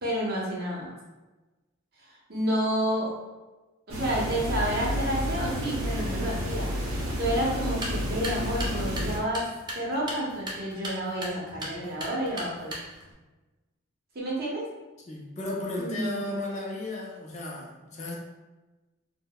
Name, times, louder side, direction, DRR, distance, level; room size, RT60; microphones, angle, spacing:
voice 1, 0.0-0.9 2.0-3.1 3.9-12.7 14.1-14.6 15.8-16.2, right 1 dB, 50° right, -5 dB, 0.8 m, -30 dB
sound 1, 3.9-9.2, equal, 90° right, 0.6 m, -30 dB
sound 2, 7.6-13.1, right 1 dB, 20° right, 0.4 m, -38 dB
voice 2, 15.1-18.1, left 2 dB, 35° left, -2 dB, 0.4 m, -34 dB
3.6 x 2.1 x 2.2 m, 1.2 s
head